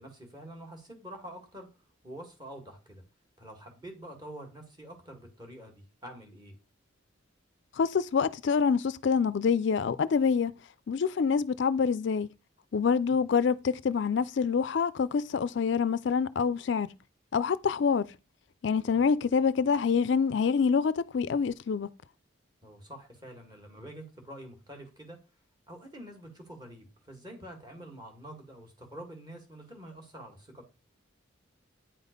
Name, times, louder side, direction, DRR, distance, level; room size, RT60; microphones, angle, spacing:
voice 1, 0.0-1.7 2.0-3.0 3.4-6.5 13.0-13.2 18.8-19.0 22.6-25.2 25.7-30.7, right 1 dB, 20° right, 2.0 m, -46 dB
voice 2, 7.7-10.5 10.9-12.3 12.7-16.9 17.3-18.1 18.6-21.9, left 6 dB, 60° left, 0.4 m, -26 dB
9.1 x 4.1 x 5.2 m
head